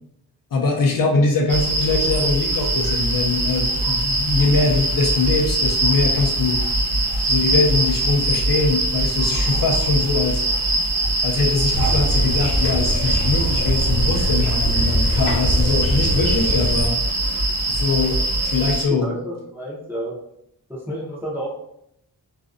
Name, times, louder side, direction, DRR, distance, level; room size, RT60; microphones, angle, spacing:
voice 1, 0.5-6.6 7.2-10.4 11.2-17.0 17.7-19.1, left 3 dB, 55° left, 0 dB, 0.5 m, -22 dB
sound 1, 1.5-18.8, right 2 dB, 75° right, 0.8 m, -22 dB
sound 2, 11.7-16.9, equal, 85° left, 0.7 m, -23 dB
voice 2, 18.9-20.2 20.7-21.5, equal, 5° right, -6 dB, 0.5 m, -30 dB
2.4 x 2.1 x 2.4 m, 0.76 s
wide cardioid pair, 155°, 40 cm